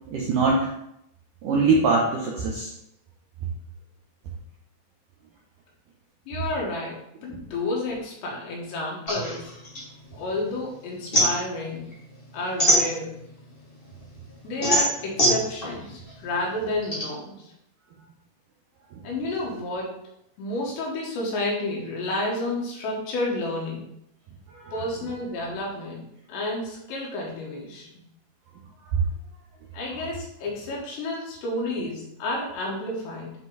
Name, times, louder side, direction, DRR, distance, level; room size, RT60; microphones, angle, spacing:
voice 1, 0.1-0.7 1.4-2.7 24.5-24.7, right 3 dB, 80° right, -2 dB, 1.9 m, -22 dB
voice 2, 6.3-9.5 10.1-11.9 12.3-13.2 14.4-17.5 19.0-19.9 20.4-23.9 24.7-27.9 29.7-33.3, left 2 dB, 75° left, -2 dB, 3.9 m, -30 dB
sound 1, 9.1-10.6 10.9-13.4 13.9-17.0, equal, 20° left, 1.4 m, -24 dB
10.0 x 3.9 x 4.0 m, 0.78 s
omnidirectional pair, 5.1 m